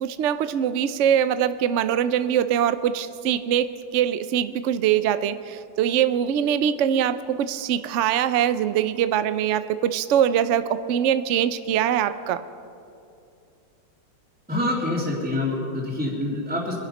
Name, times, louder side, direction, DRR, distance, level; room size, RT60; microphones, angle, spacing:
voice 1, 0.0-12.4, right 9 dB, 80° right, 12 dB, 0.6 m, -23 dB
voice 2, 14.5-16.7, left 1 dB, 5° right, -6 dB, 2.3 m, -26 dB
24.0 x 11.0 x 5.3 m, 2.5 s
omnidirectional pair, 2.0 m